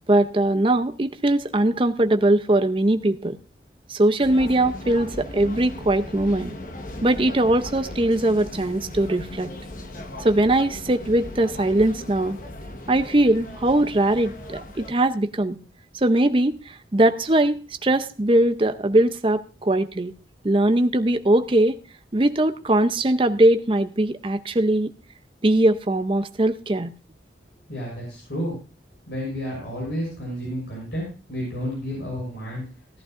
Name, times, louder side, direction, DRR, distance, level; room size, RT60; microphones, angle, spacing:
voice 1, 0.1-3.4 3.9-6.5 7.0-9.5 10.2-12.4 12.9-15.6 16.0-20.1 20.4-21.8 22.1-24.9 25.4-26.9, right 1 dB, 30° right, 10 dB, 0.6 m, -21 dB
sound 1, 4.2-14.9, left 1 dB, 50° left, 1.2 m, -37 dB
voice 2, 27.7-28.5 29.1-32.6, equal, 65° left, -4 dB, 6.3 m, -31 dB
17.0 x 11.5 x 2.5 m, 0.36 s
head